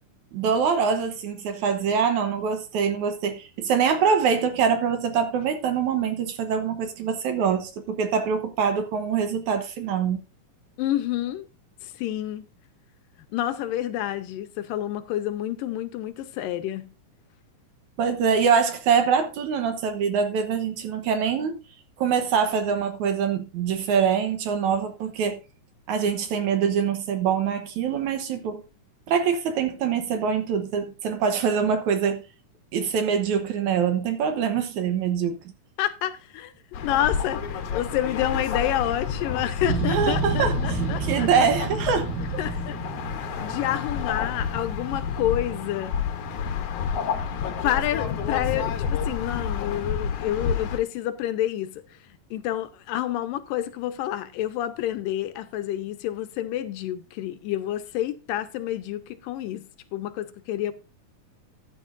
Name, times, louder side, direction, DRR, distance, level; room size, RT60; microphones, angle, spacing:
voice 1, 0.3-10.2 18.0-21.6 22.0-25.4 25.9-28.6 29.1-32.2 32.7-35.4 39.9-42.1, right 6 dB, 70° right, 2.3 m, -24 dB
voice 2, 10.8-11.5 11.8-12.5 13.3-16.9 35.8-36.5 36.8-41.3 42.4-42.8 43.4-45.9 47.6-51.8 52.1-59.6 59.9-60.7, left 12 dB, 85° left, 2.5 m, -28 dB
sound 1, 36.7-50.8, left 6 dB, 65° left, 2.2 m, -30 dB
sound 2, 39.6-43.8, right 3 dB, 40° right, 1.6 m, -29 dB
13.5 x 9.4 x 2.6 m
omnidirectional pair, 3.9 m